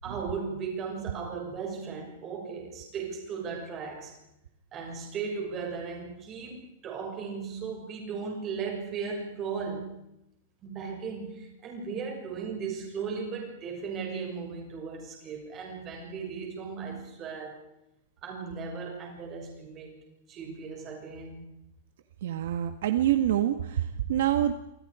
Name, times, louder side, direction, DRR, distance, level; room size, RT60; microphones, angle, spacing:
voice 1, 0.0-4.1 4.7-10.0 10.6-17.6 18.2-20.0 20.3-21.5, right 5 dB, 20° right, 1 dB, 6.6 m, -36 dB
voice 2, 22.2-24.5, right 11 dB, 55° right, 8 dB, 1.8 m, -26 dB
28.5 x 27.0 x 5.1 m, 0.84 s
supercardioid pair, 180°, 0 cm